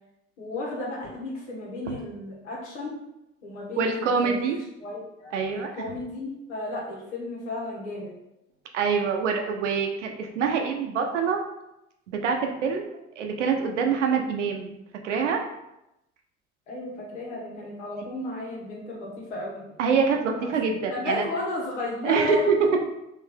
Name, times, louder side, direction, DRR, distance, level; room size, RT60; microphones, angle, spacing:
voice 1, 0.4-2.9 3.4-4.5 4.8-8.1 16.7-19.6 20.4-22.4, left 2 dB, 80° left, -3 dB, 1.2 m, -34 dB
voice 2, 3.8-4.6 5.3-5.7 8.7-11.4 12.2-14.7 15.0-15.4 19.8-21.2 22.0-22.5, right 5 dB, 90° right, 3 dB, 0.6 m, -25 dB
3.5 x 2.7 x 3.4 m, 0.88 s
hypercardioid pair, 60°, 35 cm